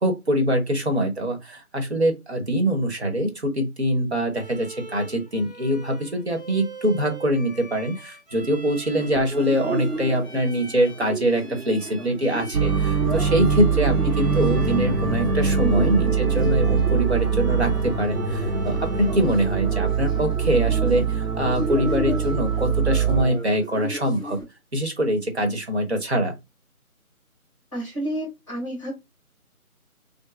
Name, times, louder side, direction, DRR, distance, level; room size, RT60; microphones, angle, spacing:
voice 1, 0.0-24.4 24.7-26.4, equal, 45° right, 1.2 m, -24 dB
Bowed string instrument, 4.3-19.5, right 2 dB, 30° right, 1.2 m, -44 dB
sound 1, 8.9-24.4, right 1 dB, 10° right, 1.3 m, -35 dB
sound 2, 12.5-23.2, right 6 dB, 85° right, 1.0 m, -23 dB
voice 2, 15.6-15.9 27.7-28.9, equal, 20° left, 1.3 m, -30 dB
6.3 x 2.2 x 2.5 m
figure-of-eight pair, 170°, 44 cm